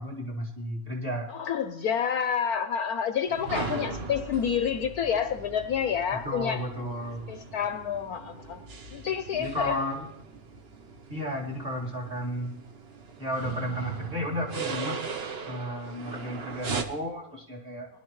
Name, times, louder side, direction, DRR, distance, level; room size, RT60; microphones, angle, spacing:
voice 1, 0.0-1.3 6.2-7.3 9.4-10.1 11.1-12.5 13.2-15.1 15.5-17.9, equal, 30° right, -4 dB, 2.6 m, -33 dB
voice 2, 1.3-6.6 7.3-8.6 8.9-9.8, left 8 dB, 65° left, 10 dB, 1.0 m, -29 dB
sound 1, 3.3-16.8, right 4 dB, 45° right, 0.8 m, -39 dB
19.5 x 11.5 x 3.1 m, 0.81 s
omnidirectional pair, 1.9 m